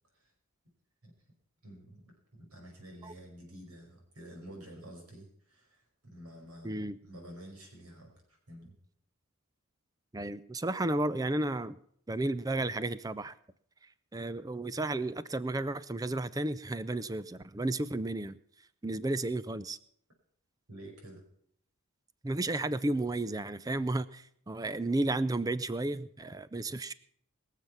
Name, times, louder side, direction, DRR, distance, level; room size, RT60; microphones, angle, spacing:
voice 1, 1.6-2.0 2.3-8.8 20.7-21.2, equal, 90° right, 1 dB, 5.3 m, -50 dB
voice 2, 6.6-7.0 10.1-11.8 12.1-13.3 14.1-18.4 18.8-19.8 22.2-26.9, right 2 dB, 15° right, 16 dB, 0.4 m, -33 dB
22.0 x 7.5 x 5.7 m, 0.65 s
head